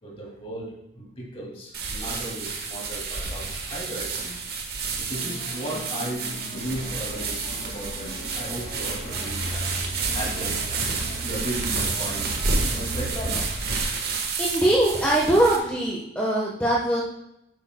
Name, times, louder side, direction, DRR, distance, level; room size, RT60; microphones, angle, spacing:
voice 1, 0.0-4.4 5.0-9.8 10.1-10.6 11.2-13.6, right 1 dB, 30° left, -2 dB, 2.4 m, -36 dB
sound 1, 1.7-15.6, right 4 dB, 50° right, 1.3 m, -30 dB
sound 2, 5.1-10.0, left 1 dB, 70° left, 2.2 m, -43 dB
Truck, 6.6-13.1, right 1 dB, 35° right, 1.8 m, -36 dB
voice 2, 14.4-17.0, right 1 dB, 10° left, -5 dB, 1.1 m, -22 dB
10.5 x 8.4 x 2.2 m, 0.83 s
head